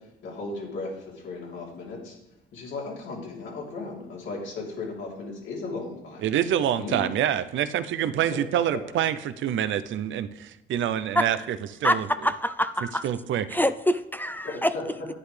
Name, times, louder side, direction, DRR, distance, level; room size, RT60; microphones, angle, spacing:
voice 1, 0.2-2.2 2.5-6.3 6.7-7.0 8.2-8.4 14.4-15.1, left 3 dB, 75° left, -3 dB, 3.3 m, -36 dB
voice 2, 6.2-12.1 13.0-13.5, right 10 dB, 75° right, 13 dB, 0.6 m, -26 dB
voice 3, 11.8-13.0 13.5-14.7, equal, 10° left, 11 dB, 0.4 m, -25 dB
11.0 x 9.6 x 3.4 m, 0.86 s
cardioid pair, 90°, 20 cm